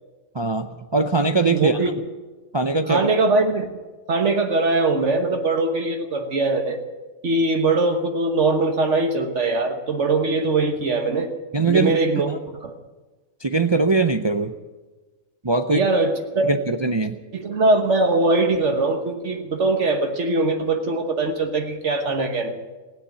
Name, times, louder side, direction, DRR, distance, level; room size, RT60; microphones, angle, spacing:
voice 1, 0.3-0.7 0.9-1.8 2.5-3.1 11.5-12.0 12.3-12.4 13.4-14.5 15.4-15.9 16.5-17.1, right 3 dB, 40° right, 7 dB, 0.4 m, -21 dB
voice 2, 1.5-2.0 2.9-3.7 4.1-6.8 7.2-11.3 11.7-12.7 15.7-16.5 17.3-22.6, right 3 dB, 60° right, 5 dB, 1.5 m, -21 dB
16.5 x 9.8 x 8.8 m, 1.3 s
omnidirectional pair, 1.4 m